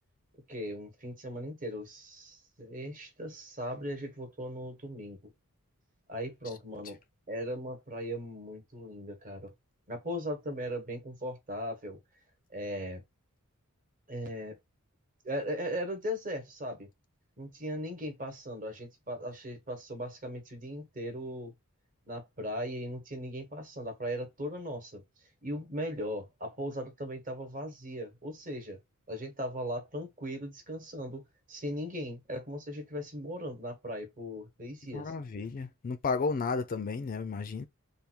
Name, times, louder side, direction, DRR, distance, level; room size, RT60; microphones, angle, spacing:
voice 1, 0.5-5.2 6.1-7.0 7.3-9.5 9.9-12.0 12.5-13.0 14.1-14.6 15.2-16.9 17.4-21.5 22.1-25.0 25.4-28.8 29.1-31.2 31.5-35.1, equal, 40° right, 1.1 m, -38 dB
voice 2, 34.9-37.7, left 4 dB, 40° left, 0.4 m, -33 dB
3.5 x 2.3 x 4.4 m
head